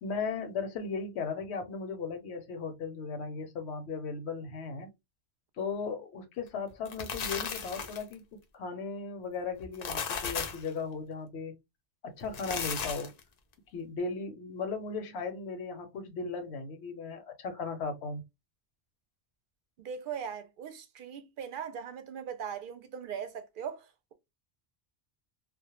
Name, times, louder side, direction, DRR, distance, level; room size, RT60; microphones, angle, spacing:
voice 1, 0.0-4.9 5.6-11.6 12.0-13.1 13.7-18.2, left 4 dB, 85° left, 0.9 m, -37 dB
sound 1, 6.7-8.1 9.6-10.7 12.2-13.2, left 6 dB, 55° left, 0.5 m, -35 dB
voice 2, 19.8-24.1, right 7 dB, 60° right, 0.6 m, -40 dB
2.2 x 2.1 x 2.9 m
omnidirectional pair, 1.1 m